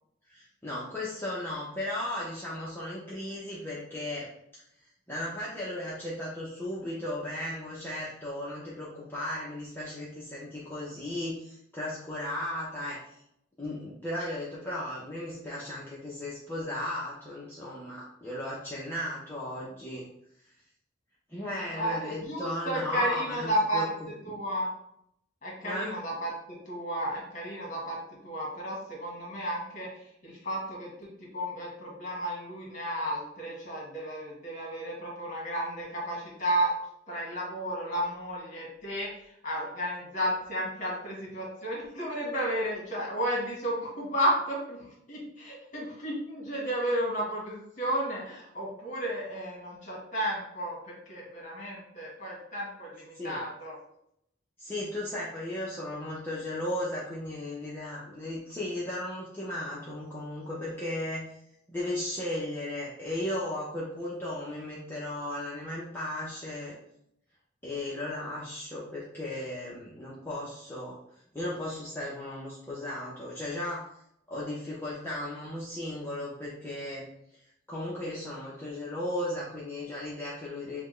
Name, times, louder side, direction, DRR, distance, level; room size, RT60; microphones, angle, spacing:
voice 1, 0.3-4.3 5.1-13.2 13.6-20.1 21.3-23.8 25.6-26.0 53.1-53.4 54.6-61.3 61.7-66.7 67.6-71.0 71.3-73.8 74.3-77.0 77.7-80.8, left 1 dB, 10° left, -7 dB, 0.7 m, -35 dB
voice 2, 21.7-23.9 24.2-24.7 25.4-36.7 37.1-53.8, equal, 45° left, -3 dB, 1.6 m, -33 dB
5.7 x 2.2 x 3.2 m, 0.74 s
head